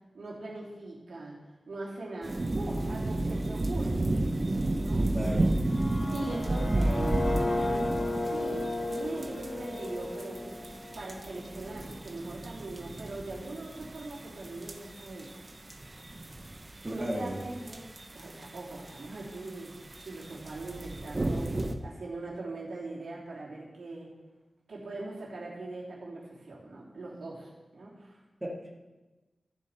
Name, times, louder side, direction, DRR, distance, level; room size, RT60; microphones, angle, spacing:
voice 1, 0.1-4.1 4.8-5.5 6.1-10.7 10.9-15.4 16.6-19.7 20.0-24.1 24.7-28.2, right 2 dB, 80° right, -5 dB, 3.1 m, -41 dB
sound 1, 2.2-21.7, right 2 dB, 35° right, 0.9 m, -33 dB
voice 2, 5.1-5.5 16.8-17.4 28.4-28.7, equal, 15° right, -3 dB, 2.1 m, -34 dB
sound 2, 5.6-11.6, left 2 dB, 50° left, 1.6 m, -34 dB
14.0 x 7.2 x 4.4 m, 1.1 s
wide cardioid pair, 75°, 0 cm